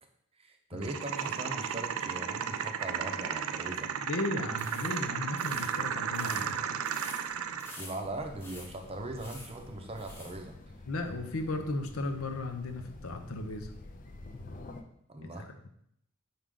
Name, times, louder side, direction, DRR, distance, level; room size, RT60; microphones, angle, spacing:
voice 1, 0.4-3.9 7.8-10.5 15.1-15.5, right 2 dB, 25° right, 4 dB, 0.6 m, -40 dB
sound 1, 0.8-7.8, right 7 dB, 75° right, 0.4 m, -34 dB
voice 2, 4.0-6.6 10.9-13.7 15.2-15.7, left 2 dB, 75° left, 6 dB, 0.8 m, -35 dB
sound 2, 4.5-10.4, left 2 dB, 10° left, 0.9 m, -49 dB
sound 3, 8.0-14.8, left 2 dB, 40° left, 0.5 m, -49 dB
5.7 x 4.9 x 3.8 m, 0.72 s
head